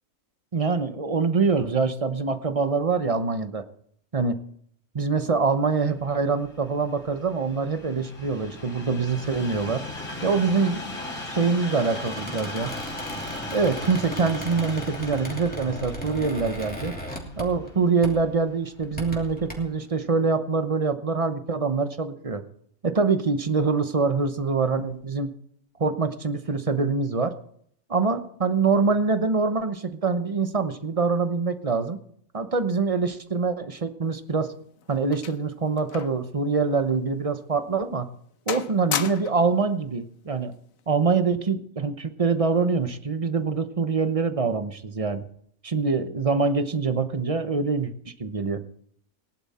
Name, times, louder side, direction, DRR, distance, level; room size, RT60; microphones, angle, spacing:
voice 1, 0.5-3.6 4.1-4.3 4.9-9.8 10.2-11.0 11.3-12.7 13.5-16.9 17.4-22.4 22.8-25.3 25.8-27.3 27.9-32.0 32.3-34.5 34.9-38.1 38.5-40.5 40.9-45.2 45.6-47.9 48.2-48.6, right 4 dB, 30° right, 10 dB, 0.9 m, -24 dB
Train, 5.8-19.0 19.7-19.8, left 2 dB, 60° left, 3.5 m, -38 dB
Squeak, 11.7-17.7 18.0-18.3 18.8-19.5, equal, 5° left, 2.8 m, -37 dB
sound 1, 34.2-36.3 36.6-36.8 37.4-37.5 38.0-38.2 38.5-39.5 40.5-40.8, left 9 dB, 75° left, 1.2 m, -34 dB
19.0 x 11.0 x 4.3 m, 0.65 s
omnidirectional pair, 1.5 m